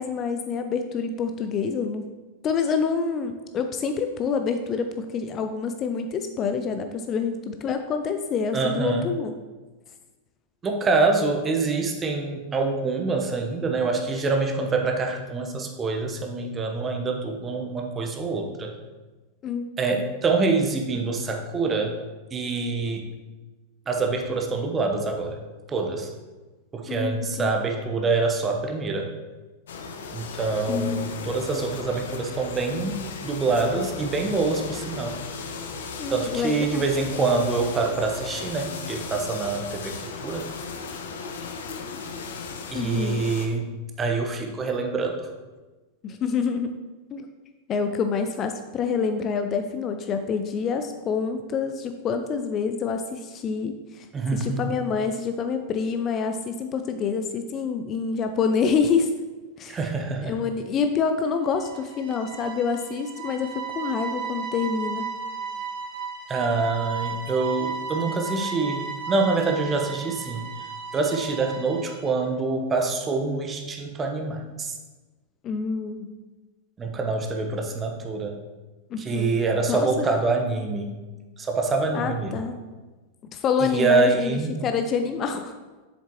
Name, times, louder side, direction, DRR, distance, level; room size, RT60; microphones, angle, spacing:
voice 1, 0.0-2.1 2.4-9.3 19.4-20.0 26.9-27.5 30.7-31.0 36.0-36.8 42.7-43.2 46.0-46.8 47.1-47.3 47.7-54.1 54.3-59.1 59.6-59.8 60.2-65.1 75.4-76.1 78.9-79.3 79.7-80.1 81.9-82.6 83.3-85.5, left 5 dB, 30° left, 7 dB, 0.5 m, -27 dB
voice 2, 8.5-9.1 10.6-18.7 19.8-21.9 22.3-23.1 23.9-25.4 25.7-26.1 26.7-29.1 30.1-35.2 36.1-39.9 40.2-40.5 42.7-43.7 44.0-45.3 54.1-54.6 59.7-60.4 66.3-70.7 70.9-74.7 76.8-78.4 79.0-80.9 81.4-82.4 83.6-84.6, right 3 dB, 20° right, 3 dB, 1.0 m, -25 dB
sound 1, 29.7-43.5, left 5 dB, 60° left, 0.7 m, -36 dB
sound 2, 61.4-72.2, right 5 dB, 55° right, 1.8 m, -35 dB
7.2 x 7.2 x 3.0 m, 1.2 s
figure-of-eight pair, 90°, 0 cm